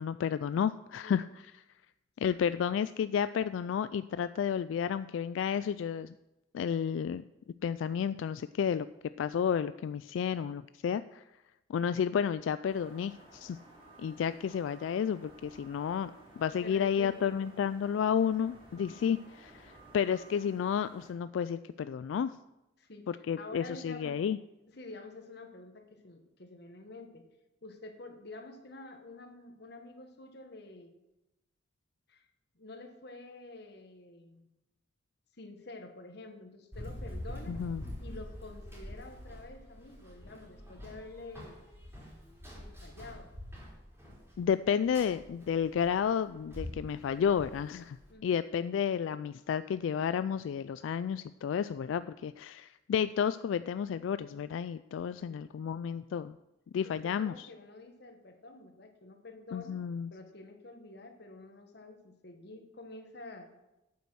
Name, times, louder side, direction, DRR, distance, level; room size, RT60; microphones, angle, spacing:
voice 1, 0.0-1.6 2.2-6.1 6.5-7.2 7.6-8.9 9.2-11.2 11.7-13.6 14.0-16.1 16.4-22.4 23.1-24.4 37.5-37.8 44.4-48.0 48.2-56.4 56.7-57.5 59.5-60.1, left 7 dB, 90° left, 14 dB, 0.3 m, -31 dB
sound 1, 12.7-21.1, right 2 dB, 30° right, 3.1 m, -56 dB
voice 2, 16.6-17.4 22.8-23.1 23.4-24.2 24.8-27.3 27.6-30.9 32.1-32.2 32.5-34.5 35.4-37.6 38.0-41.6 42.5-43.3 48.1-48.5 55.2-55.5 57.0-59.8 60.1-63.5, left 2 dB, 60° left, 6 dB, 1.4 m, -48 dB
Run, 36.7-48.1, equal, 15° right, 3.6 m, -46 dB
8.6 x 8.5 x 6.2 m, 0.96 s
head